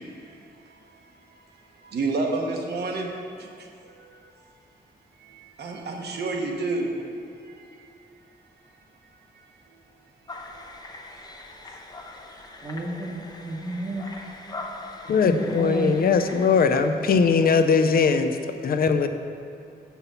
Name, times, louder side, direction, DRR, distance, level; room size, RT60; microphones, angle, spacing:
voice 1, 1.9-3.0 5.6-6.8, right 3 dB, 80° right, 1 dB, 1.2 m, -27 dB
sound 1, 10.3-16.9, left 2 dB, 25° left, 0.6 m, -42 dB
voice 2, 12.6-14.1 15.2-15.9, right 1 dB, 30° right, -5 dB, 0.9 m, -31 dB
voice 3, 15.1-18.4 18.6-19.1, left 5 dB, 60° left, 8 dB, 0.5 m, -20 dB
7.0 x 5.9 x 6.8 m, 2.4 s
wide cardioid pair, 145°, 17 cm